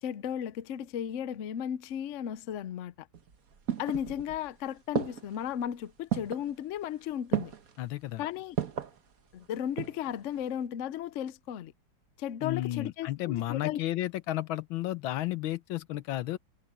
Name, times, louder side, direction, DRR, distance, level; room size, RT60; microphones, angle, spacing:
voice 1, 0.0-3.1 3.8-7.5 8.2-8.6 9.3-11.7 12.2-13.8, left 10 dB, 70° left, 0.7 m, -35 dB
sound 1, 3.1-4.5 5.0-5.5 6.1-6.5 7.3-7.8 8.6-9.0 9.5-10.1 10.4-10.5, right 9 dB, 50° right, 1.6 m, -33 dB
voice 2, 7.8-8.2 12.4-16.4, left 14 dB, 90° left, 1.6 m, -32 dB
omnidirectional pair, 2.1 m